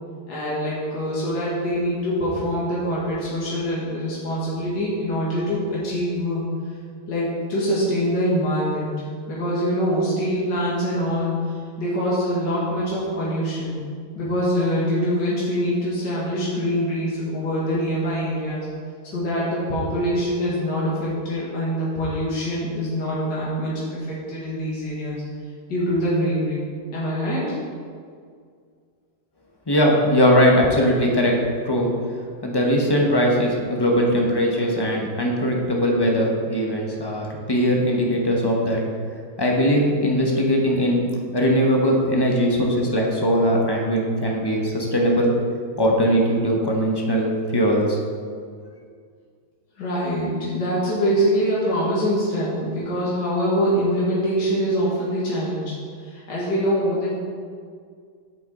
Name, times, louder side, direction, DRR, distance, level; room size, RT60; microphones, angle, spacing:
voice 1, 0.3-6.4 7.1-8.9 9.3-13.8 14.2-18.6 19.1-25.2 25.7-27.5 49.8-55.7 56.0-57.2, equal, 85° left, -7 dB, 2.3 m, -24 dB
voice 2, 29.7-31.3 31.6-31.9 32.4-38.8 39.4-41.1 41.3-45.3 45.8-48.0, equal, 20° left, -1 dB, 0.8 m, -20 dB
8.9 x 7.0 x 3.8 m, 2.1 s
omnidirectional pair, 1.9 m